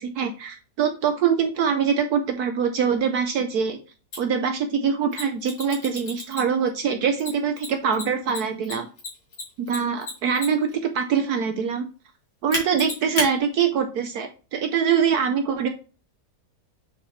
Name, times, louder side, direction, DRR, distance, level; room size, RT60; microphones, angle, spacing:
voice 1, 0.0-3.8 4.2-8.9 9.6-11.9 12.4-15.7, right 7 dB, 70° right, 6 dB, 1.2 m, -24 dB
Mechanisms, 4.1-4.2 5.1-6.7 7.2-10.7 12.5-13.3, left 2 dB, 70° left, 2.8 m, -31 dB
7.4 x 4.2 x 3.2 m, 0.35 s
omnidirectional pair, 1.8 m